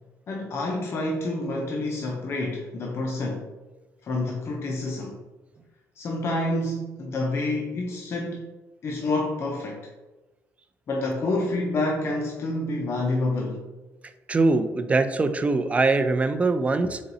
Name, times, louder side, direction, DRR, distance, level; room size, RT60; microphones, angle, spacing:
voice 1, 0.3-3.5 4.0-5.2 6.0-8.5 8.8-9.9 10.9-13.6, left 2 dB, 50° left, 0 dB, 0.6 m, -28 dB
voice 2, 14.3-17.0, right 3 dB, 25° right, 9 dB, 0.4 m, -22 dB
4.0 x 3.9 x 2.7 m, 1.2 s
cardioid pair, 95°, 6 cm